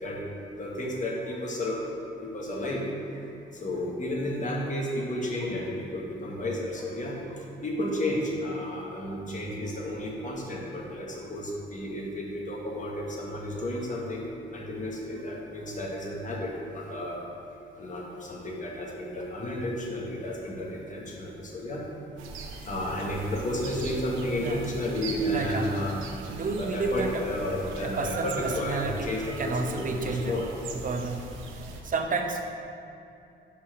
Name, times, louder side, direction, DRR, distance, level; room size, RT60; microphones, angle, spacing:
voice 1, 0.0-1.9 2.3-2.8 3.1-3.2 3.6-14.2 14.5-17.2 17.8-21.8 22.6-26.0 26.6-30.5, left 1 dB, 40° left, -2 dB, 1.5 m, -32 dB
sound 1, 22.2-31.8, right 4 dB, 90° right, 0.8 m, -40 dB
voice 2, 25.3-25.8 26.3-27.2 27.8-29.1 29.4-30.4 30.7-32.5, right 3 dB, 45° right, 4 dB, 0.8 m, -31 dB
5.7 x 4.8 x 6.0 m, 2.7 s
cardioid pair, 90°, 20 cm